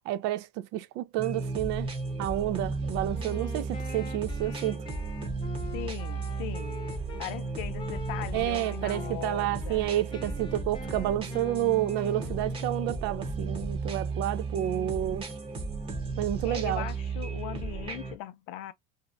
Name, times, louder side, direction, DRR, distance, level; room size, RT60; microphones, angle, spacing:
voice 1, 0.1-1.9 2.2-4.8 8.3-15.3 16.2-16.9, right 13 dB, 60° right, 0.4 m, -30 dB
sound 1, 1.2-18.2, right 4 dB, 25° right, 0.8 m, -34 dB
Wind instrument woodwind instrument, 3.1-7.3 7.8-9.2 9.6-12.8, left 6 dB, 20° left, 0.6 m, -45 dB
voice 2, 5.7-6.8 7.2-9.9 16.4-18.7, left 14 dB, 70° left, 0.5 m, -39 dB
2.6 x 2.1 x 2.4 m
supercardioid pair, 115°, 21 cm